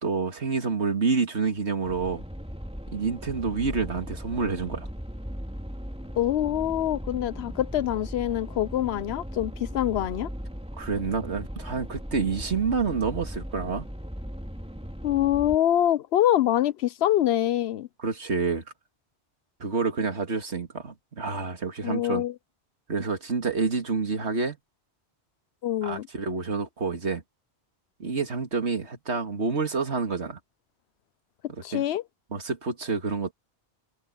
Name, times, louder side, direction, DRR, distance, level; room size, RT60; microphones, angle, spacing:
voice 1, 0.0-2.2 2.9-4.9 10.8-13.9 18.0-18.6 19.6-22.2 22.9-24.6 25.8-27.2 28.0-30.4 31.7-31.8 32.3-33.3, right 4 dB, 90° right, 2.5 m, -28 dB
sound 1, 1.8-15.5, equal, 5° right, 3.2 m, -38 dB
voice 2, 6.2-10.3 15.0-17.9 21.8-22.3 25.6-26.1 31.6-32.0, left 12 dB, 75° left, 0.9 m, -25 dB
omnidirectional pair, 1.1 m